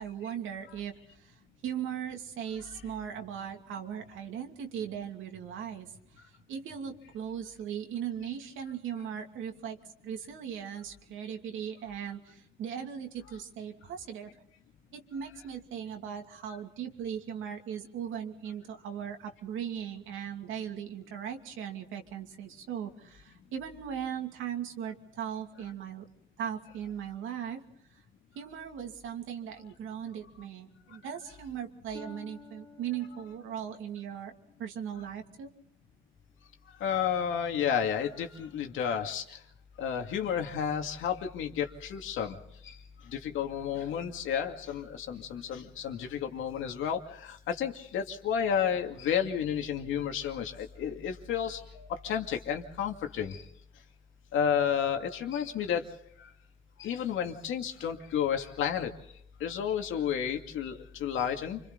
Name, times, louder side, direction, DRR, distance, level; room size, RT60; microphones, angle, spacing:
voice 1, 0.0-9.8 10.0-14.3 14.9-26.0 26.4-27.6 27.9-28.0 28.3-34.3 34.6-35.5, right 8 dB, 85° right, 3 dB, 2.6 m, -38 dB
Harp, 31.9-35.7 36.2-36.6 37.3-37.4, left 3 dB, 20° left, 3.4 m, -54 dB
voice 2, 36.8-39.2 39.8-42.4 42.6-42.7 43.1-53.4 54.3-55.8 56.8-58.9 59.4-61.6, left 8 dB, 85° left, 4 dB, 2.3 m, -31 dB
29.5 x 25.5 x 4.0 m, 0.69 s
cardioid pair, 90°, 20 cm